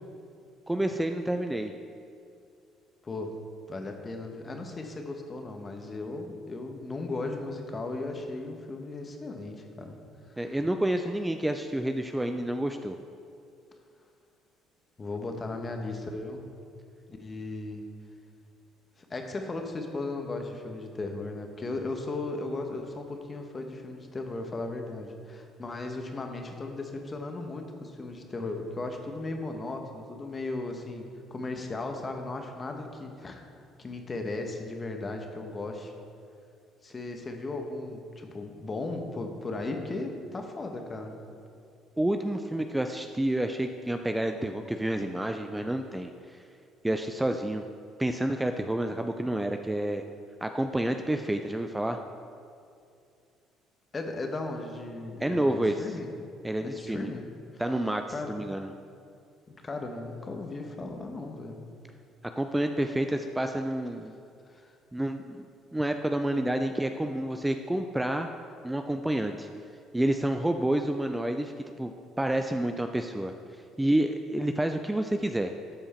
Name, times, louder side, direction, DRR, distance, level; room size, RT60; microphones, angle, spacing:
voice 1, 0.7-1.7 10.4-13.0 42.0-46.4 46.8-47.6 48.0-50.0 50.4-52.0 55.2-55.8 56.4-57.1 57.6-58.0 58.3-58.7 62.4-64.1 64.9-65.5 65.7-68.3 68.6-69.5 69.9-71.5 71.8-71.9 72.2-73.3 73.8-75.5, right 1 dB, 10° right, 6 dB, 0.4 m, -29 dB
voice 2, 3.7-10.0 10.3-10.6 15.0-16.4 17.1-17.8 19.0-33.4 33.8-35.9 36.8-41.1 53.9-56.1 56.6-57.3 58.1-58.4 59.6-61.6 64.5-64.7, left 2 dB, 30° left, 4 dB, 1.2 m, -36 dB
12.5 x 4.5 x 4.4 m, 2.4 s
supercardioid pair, 75°, 0 cm